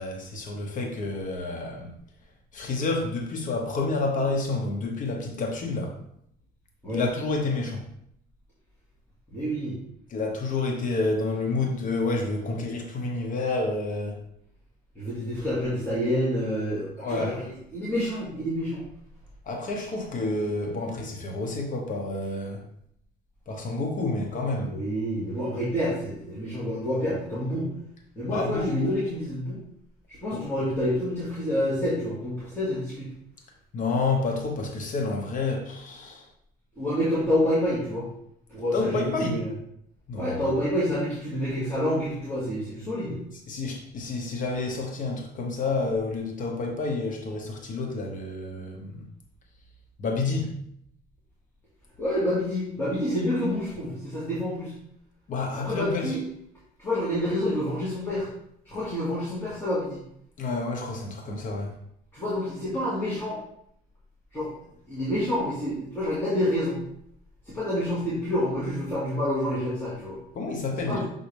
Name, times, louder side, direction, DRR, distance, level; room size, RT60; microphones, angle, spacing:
voice 1, 0.0-1.9 2.5-5.9 6.9-7.8 10.1-14.2 17.0-17.3 19.5-22.6 23.5-24.7 28.3-28.9 30.3-30.4 33.7-36.2 38.7-39.4 40.1-40.4 43.5-49.1 50.0-50.6 55.3-56.2 60.4-61.7 70.3-71.0, left 3 dB, 50° left, 2 dB, 1.1 m, -29 dB
voice 2, 9.3-9.8 15.0-18.8 24.6-27.7 28.2-29.6 30.1-33.1 36.8-38.1 38.5-39.5 40.2-43.2 52.0-54.7 55.6-56.2 56.8-58.3 58.7-60.0 62.1-63.4 64.3-64.5 64.9-66.8 67.5-70.2 70.9-71.0, equal, 15° left, -9 dB, 2.1 m, -28 dB
7.1 x 3.9 x 3.4 m, 0.71 s
cardioid pair, 110°, 17 cm